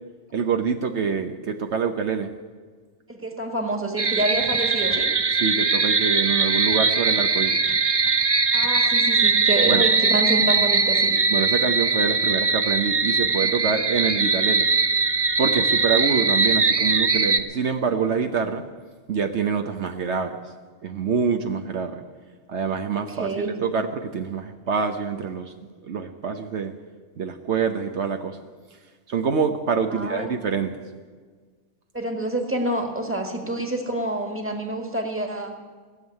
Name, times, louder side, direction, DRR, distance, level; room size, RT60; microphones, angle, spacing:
voice 1, 0.3-2.3 5.4-7.6 9.7-9.9 11.3-14.7 15.4-18.6 19.1-20.4 20.8-22.0 22.5-25.5 25.8-26.7 27.2-28.4 29.1-30.7, right 6 dB, 70° right, 6 dB, 1.2 m, -26 dB
voice 2, 3.1-5.1 8.5-11.2 23.1-23.5 29.9-30.3 31.9-35.6, right 1 dB, 10° right, 3 dB, 1.7 m, -27 dB
sound 1, 4.0-17.4, right 4 dB, 30° right, 0.5 m, -21 dB
18.0 x 7.3 x 9.6 m, 1.5 s
omnidirectional pair, 1.2 m